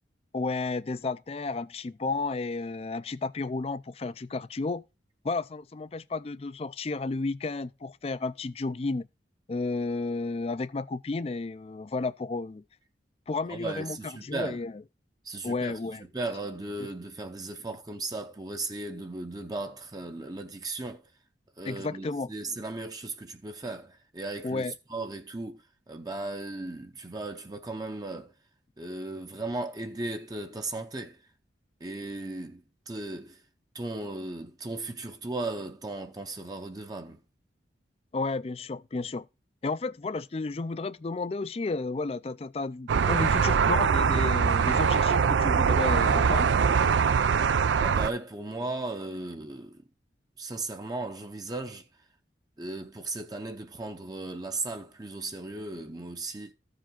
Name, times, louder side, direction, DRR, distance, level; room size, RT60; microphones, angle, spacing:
voice 1, 0.3-4.8 5.2-9.1 9.5-12.6 13.3-14.7 15.4-16.0 16.8-16.9 21.6-22.3 24.4-24.7 38.1-39.3 39.6-46.5, left 3 dB, 35° left, 0.4 m, -32 dB
voice 2, 13.5-14.6 15.2-21.1 21.6-28.3 28.8-31.3 31.8-33.4 33.7-37.2 47.8-49.8 50.4-51.9 52.6-56.5, right 2 dB, 20° right, 0.6 m, -36 dB
sound 1, 42.9-48.1, right 6 dB, 85° right, 0.4 m, -23 dB
14.0 x 5.0 x 3.7 m
head